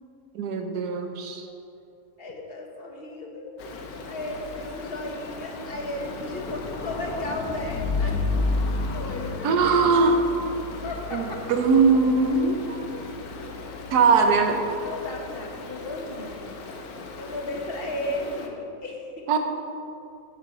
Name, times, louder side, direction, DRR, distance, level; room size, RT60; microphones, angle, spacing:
voice 1, 0.3-1.5 9.4-10.2 11.1-12.8 13.9-14.6 19.3-19.4, right 4 dB, 90° right, 5 dB, 1.4 m, -21 dB
voice 2, 2.2-3.5 4.1-8.3 8.9-9.8 10.8-11.4 14.8-16.5 17.2-19.3, left 1 dB, 40° left, 1 dB, 1.3 m, -34 dB
Stream, 3.6-18.5, left 3 dB, 70° left, 1.3 m, -33 dB
8.2 x 6.2 x 6.1 m, 2.6 s
omnidirectional pair, 1.6 m